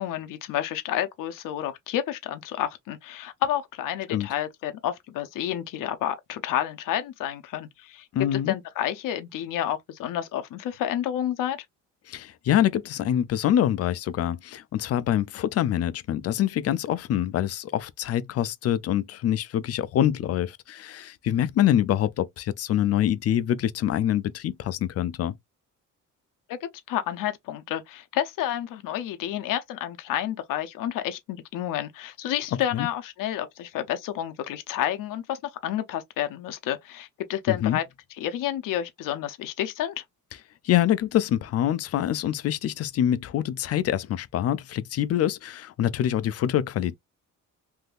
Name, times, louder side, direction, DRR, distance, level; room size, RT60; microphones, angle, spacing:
voice 1, 0.0-8.1 8.3-11.6 26.5-37.8 38.2-40.0, left 11 dB, 75° left, 0.7 m, -30 dB
voice 2, 8.1-8.5 12.1-25.3 32.7-32.9 37.5-37.8 40.6-47.0, left 11 dB, 50° left, 0.4 m, -25 dB
3.5 x 2.7 x 2.4 m
cardioid pair, 115°, 32 cm